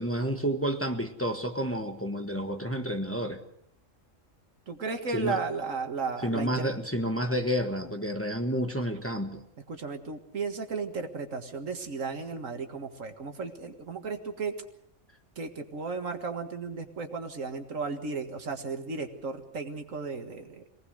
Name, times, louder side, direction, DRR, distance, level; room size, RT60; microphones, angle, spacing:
voice 1, 0.0-3.4 5.1-5.4 6.2-9.4, equal, 10° left, 5 dB, 1.3 m, -30 dB
voice 2, 4.7-6.7 9.7-14.5 15.4-20.6, right 4 dB, 85° right, 6 dB, 2.1 m, -34 dB
23.0 x 18.5 x 6.4 m, 0.73 s
omnidirectional pair, 1.3 m